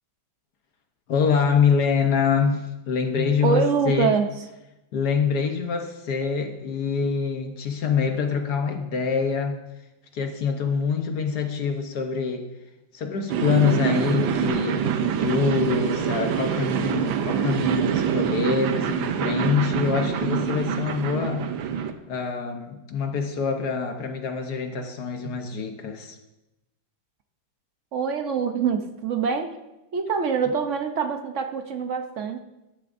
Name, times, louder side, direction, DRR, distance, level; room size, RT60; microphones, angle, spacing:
voice 1, 1.1-4.1 4.9-9.6 10.1-12.5 12.9-21.5 22.1-26.2, left 6 dB, 60° left, 5 dB, 1.4 m, -25 dB
voice 2, 3.4-4.3 27.9-29.5 29.9-32.4, right 6 dB, 60° right, 6 dB, 0.8 m, -24 dB
sound 1, 13.3-21.9, right 8 dB, 80° right, 1.5 m, -25 dB
13.5 x 11.0 x 2.6 m, 0.97 s
omnidirectional pair, 2.1 m